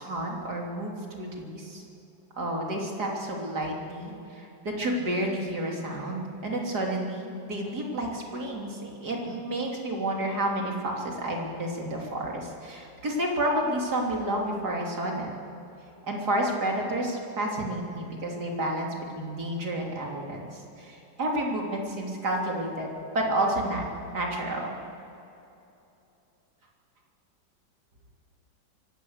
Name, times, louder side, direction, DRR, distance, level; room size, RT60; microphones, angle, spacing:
voice 1, 0.0-1.8 2.4-15.3 16.1-22.9 23.1-23.8 24.1-24.7, right 1 dB, 55° right, -1 dB, 3.8 m, -30 dB
24.0 x 17.0 x 6.7 m, 2.9 s
omnidirectional pair, 2.1 m